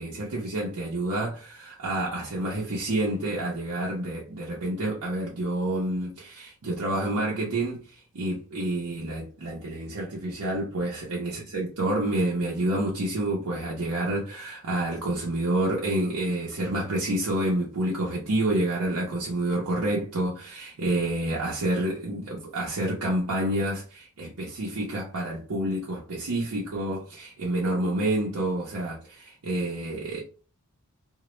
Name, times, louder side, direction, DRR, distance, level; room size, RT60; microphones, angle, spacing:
voice 1, 0.0-30.2, right 1 dB, 80° right, 0.6 m, -28 dB
2.1 x 2.0 x 3.0 m
head